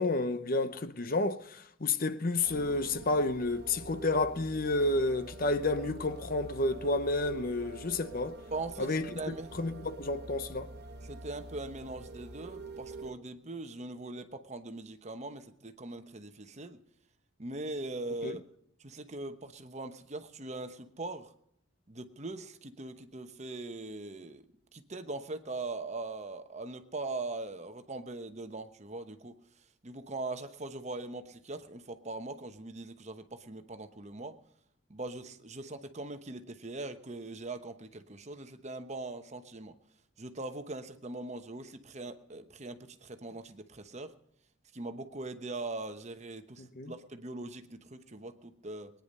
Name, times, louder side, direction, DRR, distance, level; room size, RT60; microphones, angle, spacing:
voice 1, 0.0-8.3 8.8-9.1 9.5-10.7 18.2-18.4 46.6-46.9, left 2 dB, 45° left, 0.8 m, -30 dB
sound 1, 2.4-13.1, right 3 dB, 55° right, 1.2 m, -46 dB
voice 2, 8.5-9.5 11.0-16.8 17.4-18.4 18.8-21.3 21.9-24.5 24.7-29.3 29.8-34.3 34.9-39.7 40.2-44.1 44.7-48.9, right 2 dB, 35° right, 1.0 m, -41 dB
21.0 x 10.0 x 5.4 m
head